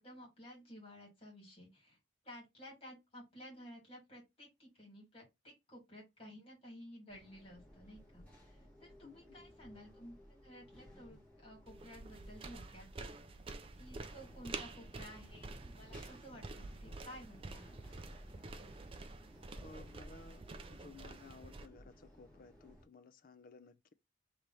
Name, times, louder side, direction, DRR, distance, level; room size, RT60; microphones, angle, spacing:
voice 1, 0.0-2.0 2.2-10.2 10.4-12.9 13.8-17.7, equal, 30° left, 2.3 m, -54 dB
sound 1, 7.1-22.9, equal, 5° left, 1.6 m, -58 dB
voice 2, 9.0-9.4 19.6-20.4 20.7-23.9, left 4 dB, 45° left, 0.4 m, -57 dB
sound 2, 11.7-21.7, right 3 dB, 30° right, 0.4 m, -49 dB
3.4 x 3.0 x 3.9 m
head